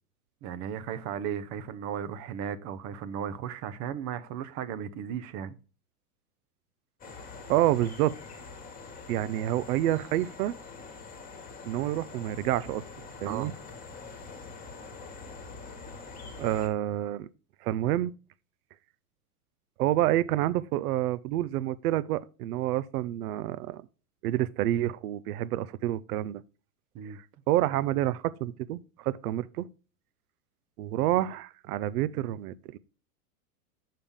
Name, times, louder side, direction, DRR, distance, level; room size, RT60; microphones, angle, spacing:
voice 1, 0.4-5.5 13.2-13.5 26.9-27.2, right 8 dB, 40° right, 0.6 m, -35 dB
sound 1, 7.0-16.7, left 4 dB, 20° left, 1.4 m, -45 dB
voice 2, 7.5-8.2 9.1-10.5 11.6-12.8 13.2-13.5 16.4-17.3 17.6-18.1 19.8-23.8 24.2-26.4 27.1-29.7 30.8-32.8, right 14 dB, 75° right, 0.6 m, -28 dB
6.7 x 5.7 x 3.5 m
hypercardioid pair, 115°, 46 cm